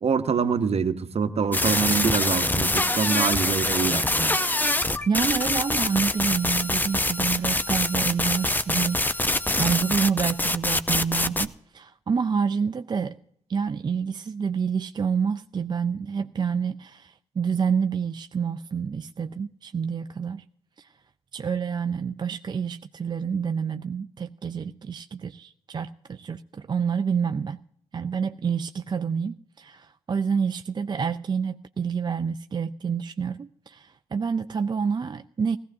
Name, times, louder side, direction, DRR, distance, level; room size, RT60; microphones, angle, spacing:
voice 1, 0.0-4.3, right 6 dB, 50° right, 0.9 m, -25 dB
sound 1, 1.5-11.4, left 1 dB, 15° left, 0.7 m, -24 dB
voice 2, 5.1-13.2 13.5-20.4 20.8-20.9 21.3-27.6 27.9-35.6, right 6 dB, 35° right, 0.4 m, -28 dB
18.0 x 15.0 x 2.7 m
hypercardioid pair, 40°, 13 cm